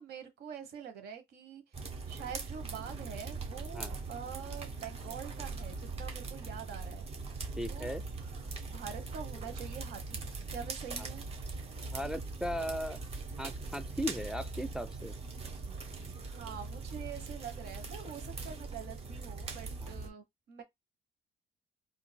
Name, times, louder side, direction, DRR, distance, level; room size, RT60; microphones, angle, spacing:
voice 1, 0.0-1.6 2.1-7.1 7.7-7.9 8.4-11.3 16.2-20.6, right 7 dB, 70° right, 1.2 m, -45 dB
sound 1, 1.7-20.1, right 3 dB, 35° right, 1.1 m, -41 dB
voice 2, 7.6-8.0 11.9-13.0 13.4-15.1 19.8-19.9, equal, 5° right, 0.3 m, -37 dB
3.8 x 2.6 x 2.2 m
cardioid pair, 110°, 17 cm